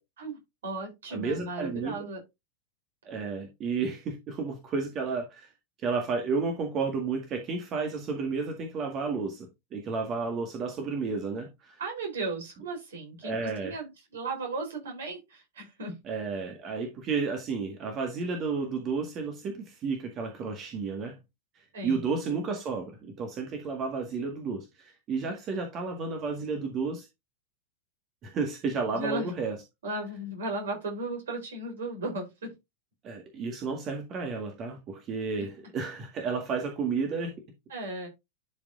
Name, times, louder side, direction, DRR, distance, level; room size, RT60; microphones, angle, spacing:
voice 1, 0.2-2.2 11.8-16.0 21.7-22.0 28.9-29.4 29.8-32.5 37.7-38.1, right 2 dB, 65° right, 3.9 m, -36 dB
voice 2, 1.1-2.0 3.1-5.5 5.8-11.8 13.2-13.8 16.0-21.2 21.8-27.1 28.2-29.6 33.0-37.3, right 4 dB, 30° right, 1.7 m, -32 dB
11.5 x 5.1 x 2.6 m
figure-of-eight pair, 90°, 0 cm